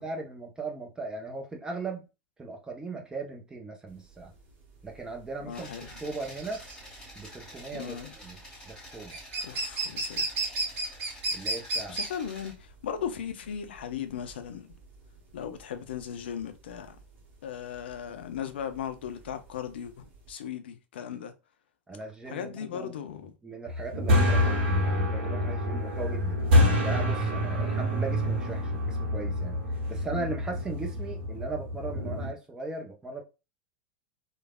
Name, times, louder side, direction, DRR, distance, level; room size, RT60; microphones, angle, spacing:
voice 1, 0.0-2.1 2.4-4.3 4.8-5.7 6.0-6.6 7.1-8.4 8.6-9.2 11.3-12.0 21.9-22.9 23.4-26.4 26.8-29.6 29.9-33.2, right 3 dB, 10° right, 0.7 m, -38 dB
sound 1, 4.0-20.3, right 2 dB, 35° right, 1.1 m, -35 dB
voice 2, 5.4-5.9 7.7-8.1 9.4-10.7 11.9-14.7 15.3-17.0 17.4-21.3 22.3-23.3 30.1-30.3, left 8 dB, 65° left, 0.5 m, -37 dB
sound 2, 5.5-12.5, equal, 10° left, 1.7 m, -48 dB
sound 3, 23.7-32.3, left 1 dB, 55° right, 0.9 m, -27 dB
3.2 x 2.2 x 2.3 m
figure-of-eight pair, 85°, 6 cm